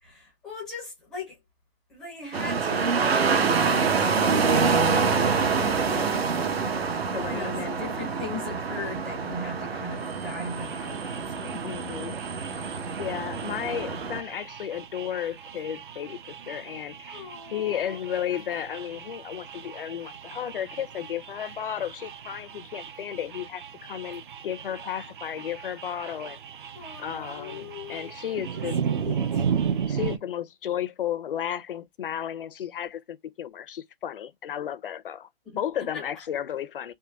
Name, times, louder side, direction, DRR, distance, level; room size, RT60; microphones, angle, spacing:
voice 1, 0.0-1.4 1.9-3.3 3.7-5.9 7.2-11.6 17.1-18.0 26.7-29.5 35.4-35.6 35.9-36.0, left 3 dB, ahead, 0.4 m, -39 dB
sound 1, 2.3-14.2, right 5 dB, 80° right, 0.9 m, -26 dB
voice 2, 5.6-6.3 7.1-7.8 11.6-12.2 13.0-26.4 27.0-28.8 29.9-35.3 35.6-36.9, left 10 dB, 60° left, 0.5 m, -33 dB
sound 2, 10.5-30.2, right 7 dB, 55° right, 0.5 m, -35 dB
3.6 x 2.2 x 2.2 m
hypercardioid pair, 155°, 30 cm